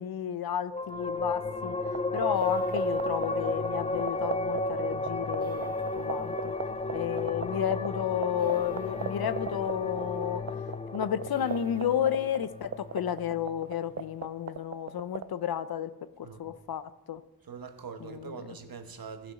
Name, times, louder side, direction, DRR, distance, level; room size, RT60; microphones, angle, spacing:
voice 1, 0.0-1.8 2.1-6.5 6.9-10.4 10.9-15.9 16.2-17.2 18.0-18.4, left 9 dB, 65° left, 0.6 m, -32 dB
sound 1, 0.7-13.6, left 2 dB, 15° left, 0.5 m, -33 dB
sound 2, 1.9-15.2, right 8 dB, 40° right, 0.5 m, -33 dB
sound 3, 2.1-15.6, right 2 dB, 20° right, 1.6 m, -55 dB
voice 2, 16.2-16.6 17.4-19.3, right 6 dB, 60° right, 1.1 m, -43 dB
15.0 x 6.0 x 4.0 m
cardioid pair, 70°, 40 cm